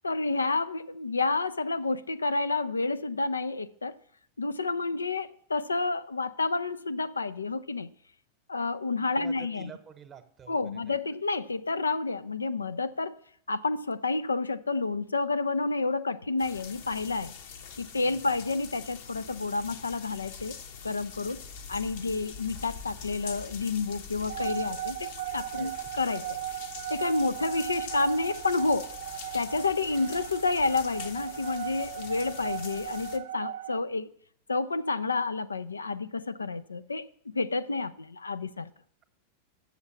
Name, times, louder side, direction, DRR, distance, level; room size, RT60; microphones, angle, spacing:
voice 1, 0.0-4.0 4.4-7.9 8.5-9.7 10.5-13.2 13.5-17.3 17.8-20.6 20.8-21.4 21.7-26.3 26.9-28.9 29.3-34.1 34.5-38.7, left 3 dB, 75° left, 0.3 m, -30 dB
voice 2, 9.2-11.2 18.1-18.2 25.5-25.7, right 7 dB, 25° right, 1.0 m, -49 dB
sound 1, 16.4-33.2, left 6 dB, 50° left, 0.8 m, -44 dB
sound 2, 24.3-33.8, right 13 dB, 60° right, 0.3 m, -37 dB
7.1 x 7.1 x 6.8 m
figure-of-eight pair, 90°, 0 cm